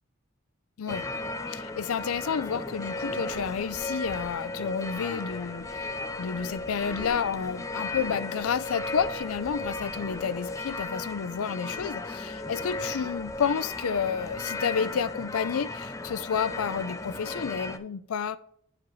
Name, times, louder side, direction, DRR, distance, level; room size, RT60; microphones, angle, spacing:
sound 1, 0.9-17.8, left 2 dB, 15° left, 0.3 m, -35 dB
voice 1, 1.5-18.4, left 7 dB, 90° left, 0.4 m, -30 dB
10.5 x 4.9 x 3.1 m
head